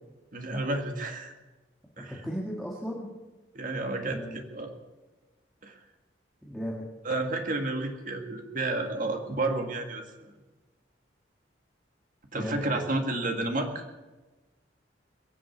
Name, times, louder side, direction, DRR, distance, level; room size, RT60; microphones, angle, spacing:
voice 1, 0.3-1.3 2.0-2.1 3.5-4.7 5.6-5.7 7.0-10.3 12.3-13.8, right 2 dB, 45° right, 4 dB, 2.0 m, -31 dB
voice 2, 2.0-3.1 4.1-4.4 6.4-6.9 12.3-12.8, equal, ahead, -4 dB, 1.8 m, -36 dB
22.0 x 7.7 x 8.1 m, 1.2 s
head